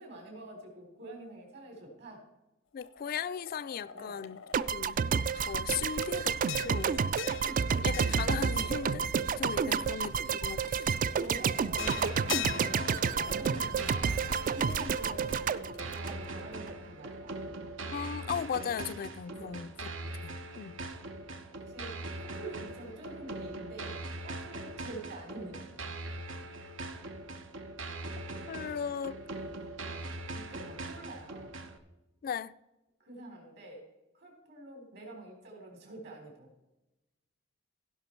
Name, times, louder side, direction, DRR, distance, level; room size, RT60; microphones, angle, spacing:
voice 1, 0.0-2.2 3.9-4.3 7.4-7.9 8.6-8.7 9.6-9.9 11.1-17.7 19.3-19.6 21.5-25.8 30.3-31.5 33.0-33.9 34.1-36.5, right 1 dB, 60° right, 3.7 m, -47 dB
voice 2, 2.7-4.4 4.7-5.0 5.4-7.0 7.8-9.0 9.4-10.9 13.8-14.0 17.9-19.7 20.2-20.7 28.5-29.2 32.2-32.5, left 7 dB, 50° left, 0.3 m, -37 dB
sound 1, 2.8-4.8 5.2-9.6 10.1-16.0, left 11 dB, 85° left, 0.7 m, -44 dB
sound 2, 4.5-16.7, right 6 dB, 45° right, 0.3 m, -30 dB
sound 3, 11.8-31.8, right 2 dB, 90° right, 1.0 m, -41 dB
16.5 x 5.7 x 4.5 m
head